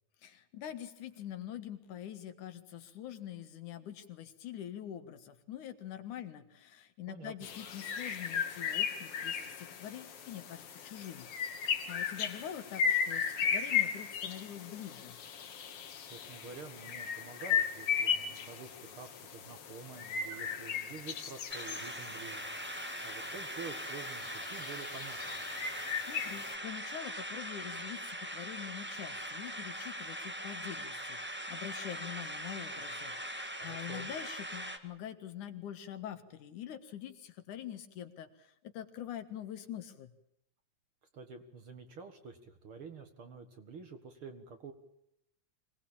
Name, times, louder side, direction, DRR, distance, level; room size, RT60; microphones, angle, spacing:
voice 1, 0.2-15.2 25.6-40.1, left 10 dB, 85° left, 8 dB, 3.1 m, -45 dB
voice 2, 7.1-7.5 16.1-22.4 23.0-25.4 33.6-34.1 41.1-44.7, right 5 dB, 50° right, 7 dB, 2.4 m, -48 dB
sound 1, 7.4-26.5, left 7 dB, 55° left, 2.4 m, -36 dB
sound 2, 21.5-34.8, equal, 10° right, 0.8 m, -41 dB
25.0 x 18.5 x 8.7 m, 0.76 s
omnidirectional pair, 3.4 m